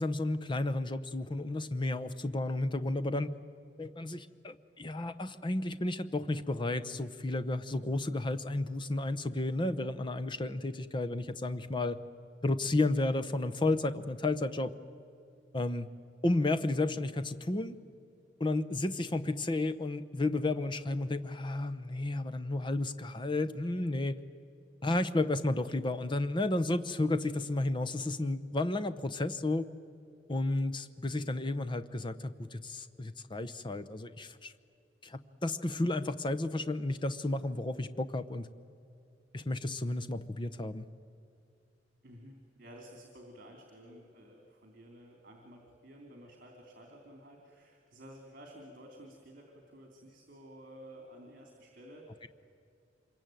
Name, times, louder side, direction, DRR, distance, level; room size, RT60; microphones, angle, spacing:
voice 1, 0.0-3.3 3.8-12.0 12.4-14.7 15.5-15.9 16.2-17.8 18.4-24.2 24.8-29.7 30.3-34.5 35.0-38.5 39.3-40.8, left 2 dB, 25° left, 11 dB, 0.8 m, -32 dB
voice 2, 42.0-52.3, equal, 50° right, 2 dB, 3.1 m, -52 dB
26.0 x 22.5 x 9.1 m, 2.5 s
head